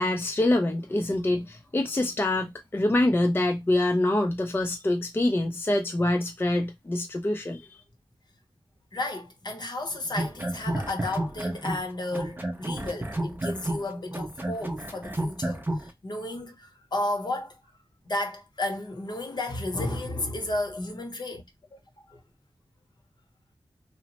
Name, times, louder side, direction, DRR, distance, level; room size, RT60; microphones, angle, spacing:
voice 1, 0.0-7.7, left 1 dB, 25° left, 0.4 m, -25 dB
voice 2, 8.9-17.6 18.1-21.4 21.7-21.8 22.1-22.2, left 2 dB, 55° left, 0.8 m, -33 dB
sound 1, 10.1-11.9 12.1-15.9, right 1 dB, 25° right, 0.6 m, -30 dB
2.8 x 2.0 x 2.8 m
wide cardioid pair, 85°, 9 cm